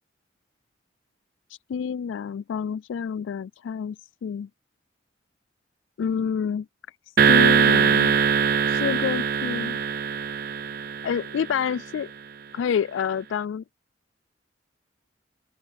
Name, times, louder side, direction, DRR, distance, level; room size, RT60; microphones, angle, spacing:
voice 1, 1.7-4.0 4.2-4.5 6.0-6.7 7.3-8.1 8.7-9.8 11.0-12.1 12.5-13.6, left 7 dB, 85° left, 0.3 m, -28 dB
sound 1, 7.2-11.6, right 6 dB, 50° right, 0.6 m, -21 dB
open air
head